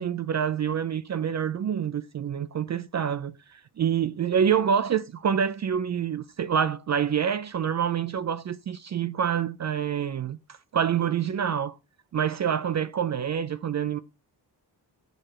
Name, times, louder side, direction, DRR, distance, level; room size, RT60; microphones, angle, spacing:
voice 1, 0.0-11.8 12.1-14.0, right 8 dB, 45° right, 0.4 m, -27 dB
6.7 x 4.3 x 4.7 m
wide cardioid pair, 130°, 41 cm